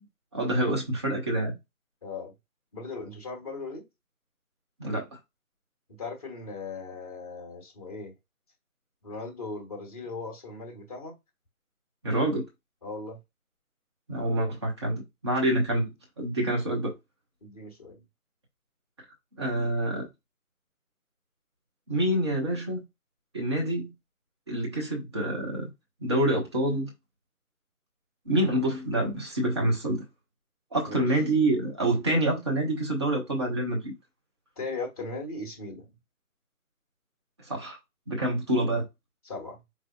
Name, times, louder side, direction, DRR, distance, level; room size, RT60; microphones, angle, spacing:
voice 1, 0.3-1.5 4.8-5.2 12.0-12.4 14.1-16.9 19.4-20.1 21.9-22.8 23.3-23.9 24.5-25.7 26.0-26.9 28.2-30.1 30.7-33.9 37.4-37.8 38.1-38.9, right 1 dB, 20° right, 0.9 m, -27 dB
voice 2, 2.0-2.3 2.7-3.9 6.0-8.1 9.0-11.1 12.8-13.2 17.4-18.0 30.9-31.1 34.6-35.9 39.2-39.6, left 3 dB, 25° left, 1.1 m, -38 dB
5.4 x 3.3 x 2.3 m
figure-of-eight pair, 150°, 44 cm